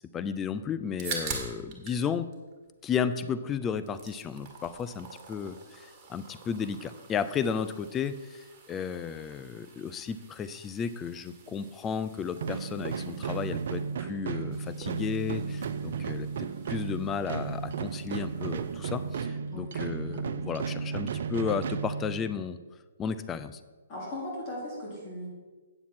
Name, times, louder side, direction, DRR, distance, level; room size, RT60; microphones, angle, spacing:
voice 1, 0.1-2.3 2.8-22.6 23.0-23.6, left 7 dB, 20° left, 12 dB, 0.4 m, -33 dB
sound 1, 0.7-2.0 2.3-3.3 3.7-19.2, right 5 dB, 30° right, 1.8 m, -46 dB
sound 2, 12.4-22.5, right 6 dB, 60° right, 0.5 m, -34 dB
voice 2, 23.9-25.3, left 1 dB, 35° left, -5 dB, 2.9 m, -37 dB
8.8 x 7.2 x 4.3 m, 1.3 s
hypercardioid pair, 135°, 0 cm